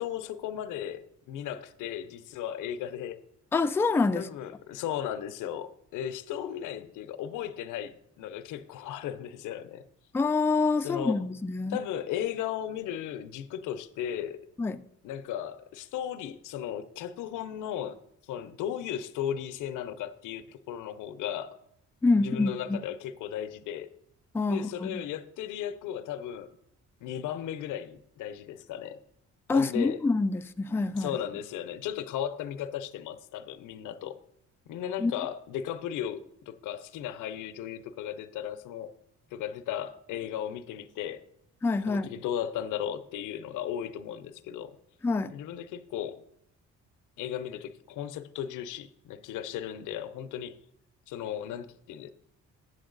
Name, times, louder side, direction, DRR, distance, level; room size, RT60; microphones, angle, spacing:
voice 1, 0.0-3.2 4.1-9.8 10.8-11.2 11.7-14.5 15.0-21.6 22.2-23.9 24.5-26.6 27.0-29.0 29.5-30.0 31.0-34.2 34.7-38.9 39.3-41.2 41.9-44.8 45.3-46.2 47.2-50.6 51.1-52.1, left 10 dB, 85° left, 0.6 m, -36 dB
voice 2, 3.5-4.3 10.1-11.8 14.6-14.8 22.0-22.8 24.3-25.0 29.5-31.2 35.0-35.1 41.6-42.1 45.0-45.3, left 3 dB, 10° left, 0.3 m, -26 dB
8.0 x 7.6 x 3.8 m
cardioid pair, 90°, 30 cm